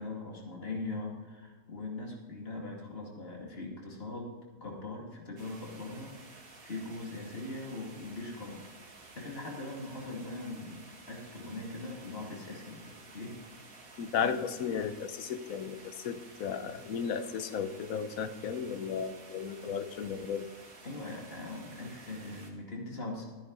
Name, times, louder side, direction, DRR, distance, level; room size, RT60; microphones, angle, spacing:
voice 1, 0.0-8.7 9.1-13.4 13.8-13.9 14.2-14.3 20.8-23.2, left 2 dB, 45° left, -1 dB, 2.7 m, -41 dB
sound 1, 5.4-22.5, right 3 dB, 90° right, 2.4 m, -53 dB
voice 2, 14.0-20.5, left 7 dB, 75° left, 11 dB, 1.2 m, -34 dB
13.5 x 10.5 x 4.0 m, 1.4 s
omnidirectional pair, 1.5 m